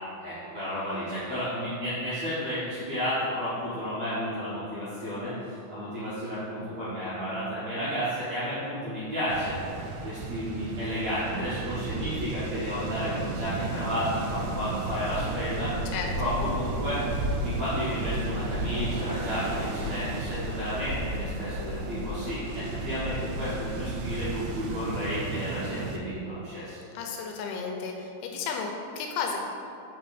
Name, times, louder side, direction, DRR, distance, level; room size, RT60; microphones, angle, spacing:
voice 1, 0.2-5.3 5.7-15.7 16.1-17.0 17.4-26.8, equal, 70° right, -13 dB, 1.6 m, -32 dB
sound 1, 9.3-26.0, right 2 dB, 85° right, 3.0 m, -33 dB
voice 2, 27.0-29.4, left 5 dB, 85° left, 2 dB, 2.9 m, -33 dB
5.9 x 5.4 x 4.1 m, 2.7 s
omnidirectional pair, 5.3 m